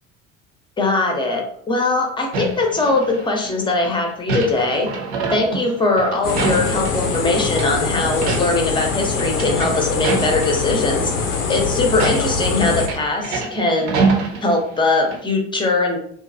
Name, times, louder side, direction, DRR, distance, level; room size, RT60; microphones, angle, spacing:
voice 1, 0.8-4.9 5.3-11.1 11.5-14.0 14.4-16.0, left 2 dB, 10° left, 2 dB, 0.6 m, -21 dB
sound 1, 2.3-3.5 3.8-7.2 7.5-7.7 8.1-8.7 9.0-10.8 11.2-11.4 11.9-14.9 15.1-15.2, right 4 dB, 50° right, 0.7 m, -25 dB
sound 2, 6.2-12.9, left 4 dB, 80° left, 0.6 m, -23 dB
2.7 x 2.3 x 2.5 m, 0.66 s
figure-of-eight pair, 65°, 38 cm